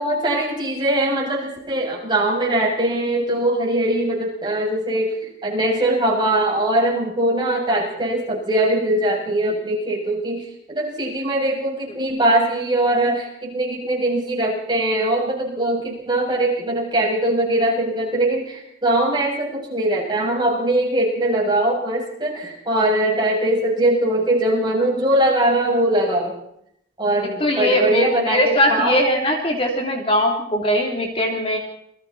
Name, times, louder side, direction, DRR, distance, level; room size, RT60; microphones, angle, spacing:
voice 1, 0.0-5.2 5.4-26.4 27.0-29.0, right 1 dB, 25° right, -3 dB, 7.7 m, -21 dB
voice 2, 27.4-31.6, equal, 30° left, 2 dB, 3.5 m, -20 dB
28.5 x 22.5 x 4.3 m, 0.73 s
head